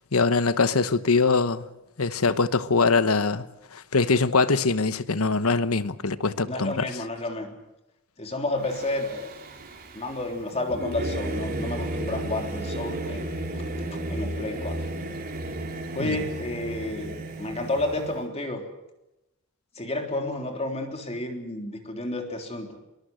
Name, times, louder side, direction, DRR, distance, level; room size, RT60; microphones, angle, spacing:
voice 1, 0.1-1.7 2.0-3.4 3.7-6.9 16.0-16.2, left 4 dB, 90° left, 1.1 m, -23 dB
voice 2, 6.5-7.6 8.2-9.3 9.9-13.4 14.1-14.9 16.0-18.6 19.8-22.8, left 2 dB, 30° left, 3.4 m, -31 dB
Singing / Musical instrument, 8.6-18.2, right 1 dB, 45° right, 4.0 m, -33 dB
23.0 x 21.5 x 7.7 m
head